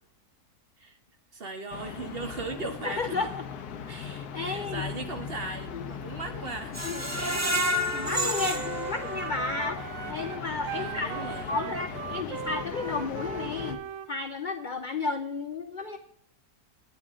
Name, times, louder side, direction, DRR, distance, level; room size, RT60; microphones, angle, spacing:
voice 1, 1.3-3.2 4.4-7.7 10.8-11.7, right 3 dB, 40° right, 5 dB, 1.3 m, -38 dB
sound 1, 1.7-13.8, left 7 dB, 85° left, 1.4 m, -39 dB
voice 2, 2.8-3.4 3.9-4.8 5.7-5.8 6.8-7.0 7.9-11.1 11.5-13.8 14.1-16.0, left 4 dB, 55° left, 7 dB, 0.5 m, -33 dB
Screech, 6.7-9.7 10.1-10.2 10.6-10.7, equal, 15° right, 0.6 m, -30 dB
Wind instrument woodwind instrument, 7.3-14.1, right 8 dB, 65° right, 1.0 m, -39 dB
9.8 x 9.7 x 3.7 m, 0.69 s
omnidirectional pair, 1.6 m